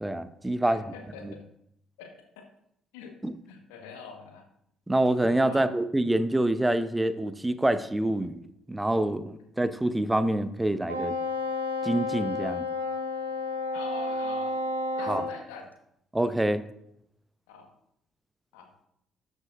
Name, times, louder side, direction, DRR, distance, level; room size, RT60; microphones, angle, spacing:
voice 1, 0.0-0.8 1.2-1.3 3.2-3.3 4.9-8.4 8.7-11.1 11.8-12.7 15.1-15.2 16.1-16.6, right 1 dB, 10° right, 13 dB, 0.7 m, -26 dB
voice 2, 0.6-1.4 2.0-2.3 2.9-3.2 3.5-4.5 5.5-5.7 13.7-14.6 15.0-15.7 17.5-17.7 18.5-18.7, left 5 dB, 70° left, 4 dB, 1.4 m, -44 dB
Wind instrument woodwind instrument, 10.9-15.4, left 2 dB, 85° right, 0.9 m, -31 dB
13.0 x 8.0 x 2.5 m, 0.75 s
figure-of-eight pair, 45°, 0 cm